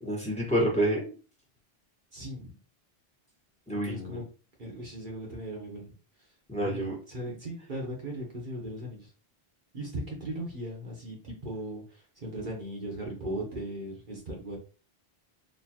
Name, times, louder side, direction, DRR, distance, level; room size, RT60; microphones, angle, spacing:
voice 1, 0.0-1.1 3.7-4.2 6.5-7.0, right 1 dB, 5° left, -3 dB, 1.4 m, -28 dB
voice 2, 2.1-2.6 3.8-4.2 4.6-6.0 6.6-6.8 7.1-9.1 9.7-11.8 12.2-14.6, right 1 dB, 50° right, -2 dB, 1.3 m, -38 dB
4.3 x 2.9 x 2.9 m, 0.35 s
omnidirectional pair, 1.1 m